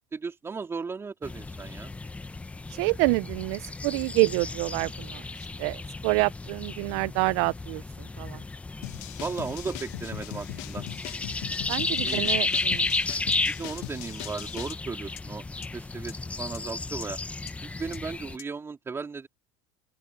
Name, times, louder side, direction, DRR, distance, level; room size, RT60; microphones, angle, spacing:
voice 1, 0.0-1.9 9.2-10.8 12.0-12.2 13.2-15.4 15.7-17.2 17.6-19.3, right 4 dB, 15° right, 3.6 m, -36 dB
sound 1, 1.2-18.4, left 3 dB, 10° left, 0.8 m, -33 dB
voice 2, 2.7-5.2 5.6-7.8 8.2-8.4 11.7-12.9, right 27 dB, 60° right, 0.4 m, -27 dB
sound 2, 8.8-14.7, left 21 dB, 55° left, 1.2 m, -40 dB
sound 3, 13.3-13.4 13.8-13.9 14.2-14.3 14.7-14.8 15.2-15.3 15.6-15.7 16.1-16.2 16.5-16.6 17.0-17.1 17.5-17.6 17.9-18.0 18.4-18.5, left 13 dB, 40° left, 1.4 m, -43 dB
open air
supercardioid pair, 140°, 15 cm